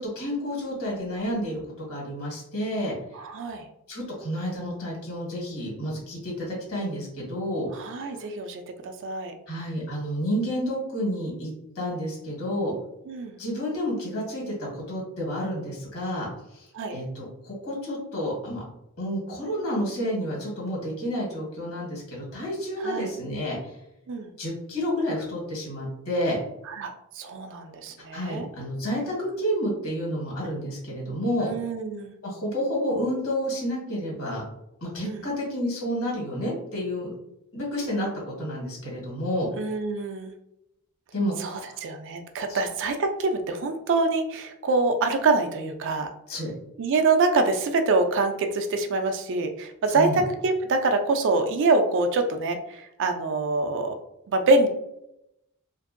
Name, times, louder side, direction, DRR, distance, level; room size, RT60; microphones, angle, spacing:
voice 1, 0.0-2.9 3.9-7.7 9.5-11.5 11.7-12.7 13.4-16.3 16.6-18.6 19.0-23.6 24.4-26.4 28.1-31.5 32.2-34.4 34.8-37.1 37.5-39.5 41.1-41.8 42.5-42.6 46.3-46.5 49.9-50.2, equal, 65° left, -3 dB, 1.4 m, -30 dB
voice 2, 3.1-3.7 7.7-9.3 13.1-13.4 16.7-17.0 22.8-23.1 24.1-24.3 26.7-28.5 31.4-32.1 35.0-35.3 39.6-40.3 41.4-46.1 46.8-53.9 54.3-54.7, right 3 dB, 55° right, 6 dB, 0.4 m, -25 dB
2.8 x 2.6 x 2.5 m, 0.83 s
head